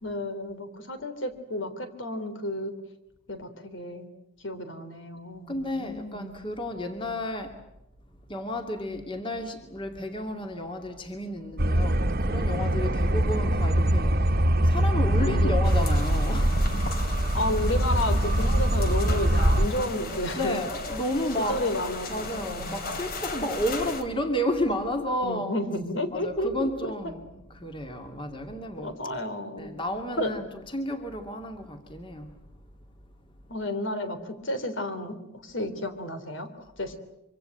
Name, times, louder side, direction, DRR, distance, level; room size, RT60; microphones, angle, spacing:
voice 1, 0.0-2.8 3.3-4.1 4.4-6.4 8.9-9.0 15.2-15.6 17.3-20.6 21.5-23.0 25.2-26.9 28.8-29.7 30.2-30.3 33.5-36.5 36.8-37.0, left 1 dB, 65° left, 9 dB, 3.4 m, -32 dB
voice 2, 5.5-7.5 8.3-14.1 14.6-16.8 20.4-21.6 22.1-25.6 26.1-29.0 29.6-30.4 30.7-32.3, equal, 25° left, 5 dB, 2.4 m, -32 dB
sound 1, 11.6-19.7, right 1 dB, 50° right, 1.5 m, -23 dB
sound 2, 15.6-24.0, left 2 dB, 50° left, 3.2 m, -36 dB
25.5 x 25.0 x 7.8 m, 0.85 s
head